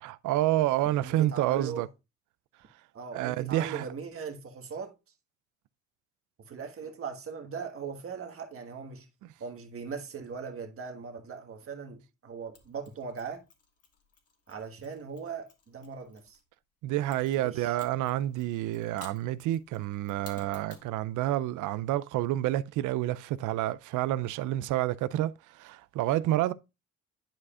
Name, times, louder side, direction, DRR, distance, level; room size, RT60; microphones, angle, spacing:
voice 1, 0.0-1.9 3.1-3.8 16.8-25.3 25.6-26.5, right 14 dB, 85° right, 0.5 m, -29 dB
voice 2, 1.0-1.9 2.9-4.9 6.4-9.1 9.4-13.4 14.5-16.4 17.3-17.8, right 6 dB, 45° right, 1.5 m, -39 dB
Mechanisms, 12.5-16.4 17.1-20.9, left 5 dB, 55° left, 1.7 m, -56 dB
10.5 x 4.9 x 2.4 m
cardioid pair, 90°, 30 cm